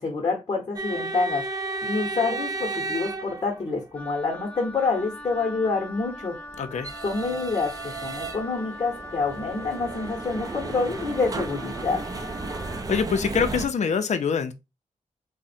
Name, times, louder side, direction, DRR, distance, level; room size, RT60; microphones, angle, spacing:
voice 1, 0.0-6.4 7.0-12.1, left 4 dB, 40° left, 0.9 m, -27 dB
sound 1, 0.8-4.0 6.0-13.7, right 3 dB, 30° right, 0.5 m, -33 dB
Wind instrument woodwind instrument, 3.9-13.1, left 1 dB, 10° left, 0.7 m, -41 dB
voice 2, 6.6-6.9 12.9-14.5, left 6 dB, 65° left, 0.5 m, -24 dB
3.6 x 2.1 x 4.1 m
wide cardioid pair, 140°, 13 cm